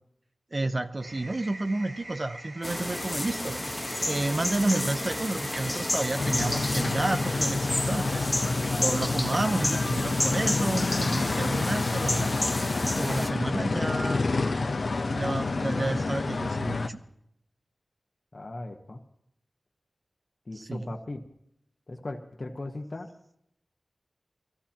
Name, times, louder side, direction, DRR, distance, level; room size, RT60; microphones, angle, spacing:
voice 1, 0.5-8.3 8.8-12.3 12.8-14.3 15.1-17.0 20.5-20.8, right 2 dB, 40° right, 9 dB, 0.7 m, -31 dB
sound 1, 1.0-7.3, right 1 dB, 70° right, 7.7 m, -44 dB
sound 2, 2.6-13.3, left 1 dB, 15° left, 1.1 m, -31 dB
sound 3, 6.2-16.9, left 3 dB, 65° left, 0.8 m, -28 dB
voice 2, 18.3-19.0 20.5-21.2 21.9-23.1, left 2 dB, 45° left, 2 dB, 1.2 m, -38 dB
23.0 x 15.5 x 2.9 m, 0.75 s
wide cardioid pair, 85°, 0 cm